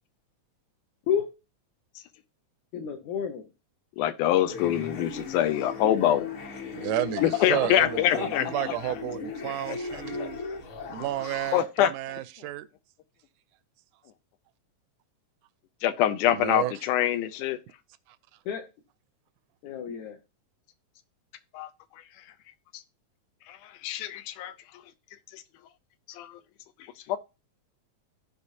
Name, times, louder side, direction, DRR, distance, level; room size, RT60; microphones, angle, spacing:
voice 1, 2.7-3.4 7.3-7.7 8.1-8.7 18.5-18.6 19.6-20.2, left 8 dB, 75° left, 2.2 m, -30 dB
voice 2, 4.0-6.3 7.2-8.5 9.4-9.5 10.2-10.3 11.5-11.9 15.8-17.6 21.5-21.7 23.5-24.5 25.3-25.4 26.1-26.4 27.1-27.2, left 12 dB, 90° left, 2.2 m, -25 dB
sound 1, 4.5-11.6, left 4 dB, 50° left, 1.7 m, -38 dB
voice 3, 6.8-10.4 10.9-12.7 16.3-16.7, right 14 dB, 85° right, 2.0 m, -32 dB
15.5 x 5.2 x 2.7 m
omnidirectional pair, 3.5 m